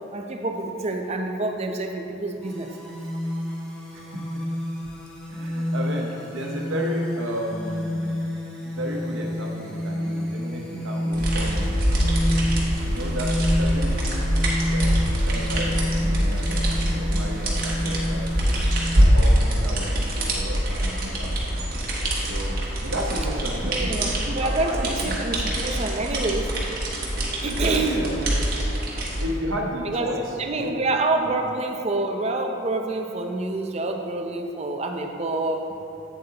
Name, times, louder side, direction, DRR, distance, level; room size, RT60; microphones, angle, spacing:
voice 1, 0.1-2.7 23.5-26.5 27.4-28.1 29.8-30.1 30.4-35.7, right 2 dB, 35° right, 3 dB, 0.5 m, -27 dB
sound 1, 2.4-19.0, left 1 dB, 5° left, 1.0 m, -29 dB
voice 2, 3.9-4.2 5.3-8.2 8.6-12.2 12.8-14.4 14.7-14.9 15.2-18.2 18.9-21.4 22.2-25.3 27.4-28.4 29.2-30.7 31.2-31.3, equal, 80° right, 0 dB, 1.0 m, -33 dB
sound 2, 11.1-29.2, equal, 50° right, 1.2 m, -24 dB
8.2 x 7.5 x 2.9 m, 2.8 s
head